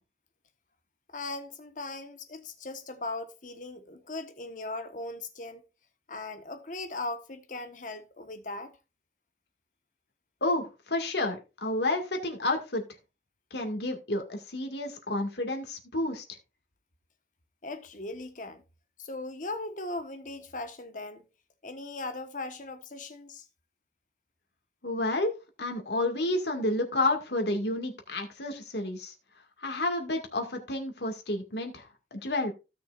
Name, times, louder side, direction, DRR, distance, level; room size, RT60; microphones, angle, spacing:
voice 1, 1.1-5.6 6.1-8.7 17.6-18.6 19.0-21.2 21.6-23.4, left 2 dB, 45° left, 1.2 m, -38 dB
voice 2, 10.4-12.8 13.5-16.2 24.8-25.3 25.6-29.1 29.6-32.5, left 2 dB, 75° left, 2.1 m, -30 dB
16.0 x 6.0 x 2.5 m
head